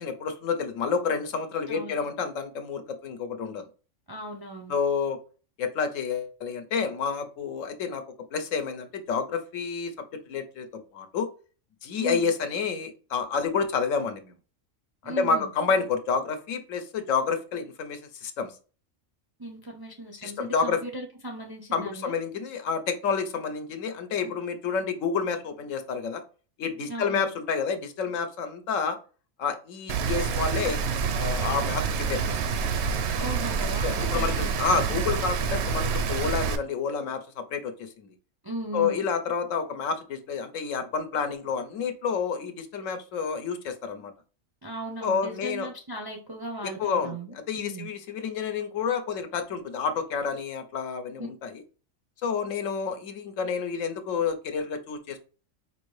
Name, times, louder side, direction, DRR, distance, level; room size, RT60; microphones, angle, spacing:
voice 1, 0.0-3.6 4.7-5.2 5.6-8.0 8.3-9.9 10.3-11.3 11.8-14.3 15.0-18.5 20.2-20.8 21.7-26.2 26.6-29.0 29.4-30.8 31.1-32.7 33.8-38.1 38.7-44.1 45.0-45.7 46.6-47.1 47.5-51.6 52.2-55.2, left 5 dB, 75° left, 8 dB, 1.0 m, -29 dB
voice 2, 1.7-2.0 4.1-4.8 12.0-12.3 15.0-15.5 19.4-22.2 26.9-27.3 32.1-32.3 33.2-35.1 38.4-39.0 44.6-47.9 51.2-51.3, right 1 dB, 30° right, 1 dB, 0.4 m, -37 dB
Rain, 29.9-36.6, right 6 dB, 65° right, 0.8 m, -27 dB
4.9 x 2.6 x 3.1 m, 0.36 s
omnidirectional pair, 1.4 m